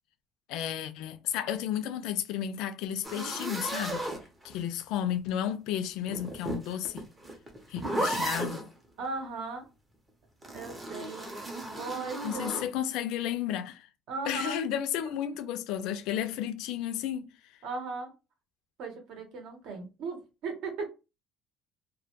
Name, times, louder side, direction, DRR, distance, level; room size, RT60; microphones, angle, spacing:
voice 1, 0.5-4.1 4.4-7.0 7.7-8.7 12.2-13.9 14.3-17.3, left 10 dB, 80° left, 0.3 m, -33 dB
sound 1, 3.0-4.8 6.0-8.7 10.4-12.7, right 1 dB, 15° right, 0.5 m, -35 dB
voice 2, 9.0-9.7 10.5-11.3 11.8-12.6 14.1-14.6 15.0-15.1 17.6-18.1 18.8-20.9, right 4 dB, 65° right, 0.8 m, -37 dB
2.1 x 2.1 x 2.8 m
cardioid pair, 165°, 0 cm